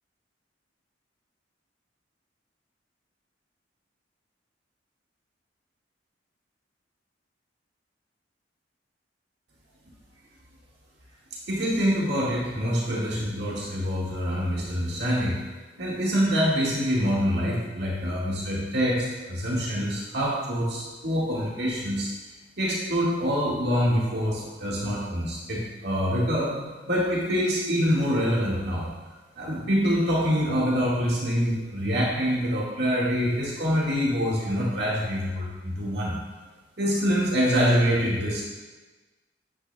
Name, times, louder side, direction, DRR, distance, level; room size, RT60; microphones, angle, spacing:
voice 1, 11.5-15.4 15.8-22.1 22.6-28.9 29.4-36.2 36.8-38.4, equal, 60° right, -5 dB, 1.7 m, -25 dB
9.9 x 8.3 x 2.2 m, 1.2 s
head